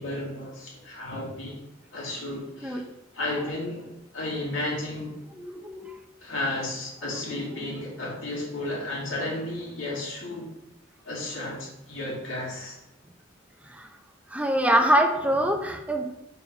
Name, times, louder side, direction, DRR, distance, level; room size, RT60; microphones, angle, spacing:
voice 1, 0.0-1.6 1.9-2.8 3.1-3.9 4.1-5.2 6.2-10.5 11.0-12.8, left 2 dB, 85° left, -4 dB, 2.6 m, -33 dB
voice 2, 5.4-5.9 13.7-13.9 14.3-16.2, right 1 dB, 5° right, 4 dB, 0.5 m, -24 dB
5.4 x 4.6 x 5.1 m, 0.93 s
head